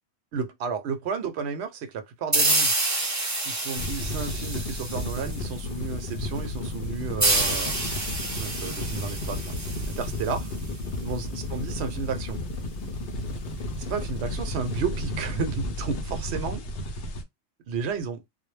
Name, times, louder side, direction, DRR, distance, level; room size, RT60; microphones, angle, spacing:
voice 1, 0.3-2.7 3.4-7.9 8.2-9.4 9.9-10.5 11.0-12.4 13.9-16.6 17.7-18.2, right 5 dB, 70° right, 0.9 m, -32 dB
sound 1, 2.3-5.7 7.2-10.7, right 2 dB, 20° right, 0.5 m, -28 dB
sound 2, 3.8-17.2, left 1 dB, 60° left, 0.7 m, -33 dB
2.2 x 2.1 x 3.1 m
omnidirectional pair, 1.2 m